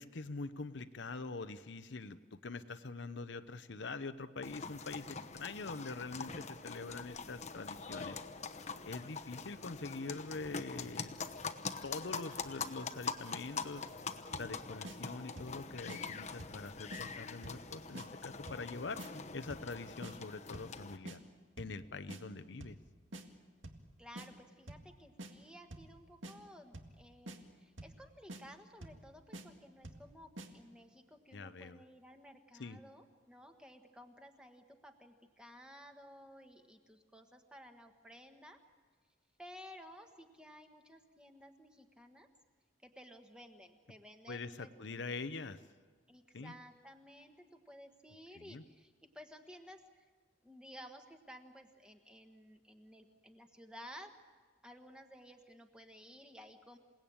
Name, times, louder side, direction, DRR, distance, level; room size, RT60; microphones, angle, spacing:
voice 1, 0.0-8.2 8.9-11.1 11.8-13.9 14.4-19.0 19.3-21.2 21.6-22.8 31.3-31.8 32.6-32.8 44.3-45.6 46.3-46.5 48.3-48.6, left 3 dB, 70° left, 11 dB, 0.8 m, -44 dB
sound 1, 4.4-21.0, left 5 dB, 35° left, 0.9 m, -44 dB
sound 2, 14.3-14.6 14.8-15.0 15.4-15.6 15.9-16.0 16.4-16.6 16.9-17.0 17.4-17.7 17.9-18.1 18.5-18.7 19.0-19.1 19.5-19.7 20.0-20.1 20.5-20.8 21.1-21.2 21.6-21.8 22.1-22.2 22.6-22.8 23.1-23.2 23.6-23.9 24.2-24.3 24.7-24.9 25.2-25.3 25.7-25.9 26.2-26.4 26.7-27.0 27.3-27.4 27.8-28.0 28.3-28.4 28.8-29.0 29.3-29.5 29.8-30.1 30.4-30.5, right 1 dB, 85° right, 2.0 m, -47 dB
voice 2, 24.0-38.6 39.4-42.3 42.8-44.7 46.1-50.0 50.4-54.1 54.6-56.8, equal, 5° right, 5 dB, 1.4 m, -55 dB
28.0 x 18.0 x 8.8 m, 1.5 s
head